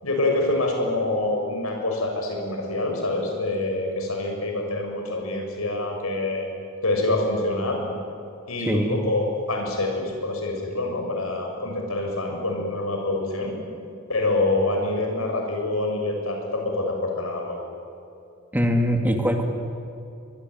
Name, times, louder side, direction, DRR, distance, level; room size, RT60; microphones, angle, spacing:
voice 1, 0.0-6.5 6.8-7.8 8.5-13.6 14.1-17.6, left 2 dB, 85° left, 2 dB, 6.8 m, -26 dB
voice 2, 8.7-9.0 18.5-19.4, equal, 10° right, 3 dB, 2.2 m, -22 dB
25.0 x 20.5 x 9.5 m, 2.6 s
head